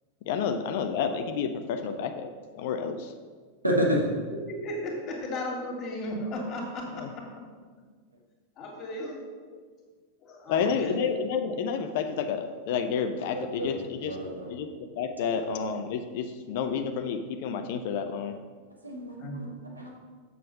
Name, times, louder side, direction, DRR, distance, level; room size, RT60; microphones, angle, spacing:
voice 1, 0.2-2.3 2.5-3.1 6.9-7.1 9.5-9.6 10.5-14.2 14.5-18.3, left 6 dB, 50° left, 7 dB, 0.6 m, -30 dB
voice 2, 3.6-4.0 13.3-13.7 14.0-14.5 16.6-16.7 18.8-19.5 19.8-19.9, equal, 85° right, -2 dB, 1.9 m, -29 dB
voice 3, 4.5-7.2 8.6-9.2 9.7-9.8 10.2-11.0 19.2-19.4, left 1 dB, 35° left, -1 dB, 2.4 m, -35 dB
7.6 x 6.8 x 5.3 m, 1.5 s
figure-of-eight pair, 90°, 0 cm